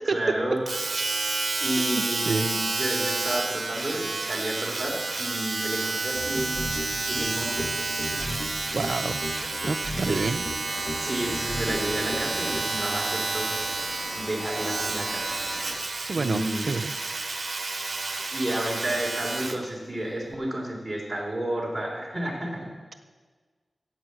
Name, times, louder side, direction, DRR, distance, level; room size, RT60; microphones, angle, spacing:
voice 1, 0.1-0.6 1.6-6.7 7.1-7.7 8.1-8.2 10.0-10.3 11.0-13.5 14.1-15.4 16.2-16.7 18.3-22.7, right 1 dB, 10° right, -2 dB, 3.6 m, -31 dB
Domestic sounds home sounds, 0.7-19.6 20.3-20.4, right 3 dB, 45° right, 1.2 m, -30 dB
voice 2, 1.8-2.5 8.7-9.2 9.6-10.5 16.1-16.9, right 4 dB, 65° right, 8 dB, 0.4 m, -29 dB
sound 1, 6.1-12.7, left 1 dB, 30° left, 1.5 m, -36 dB
sound 2, 10.7-15.8, left 2 dB, 85° left, 1.8 m, -41 dB
12.0 x 8.7 x 7.8 m, 1.5 s
wide cardioid pair, 90°, 0 cm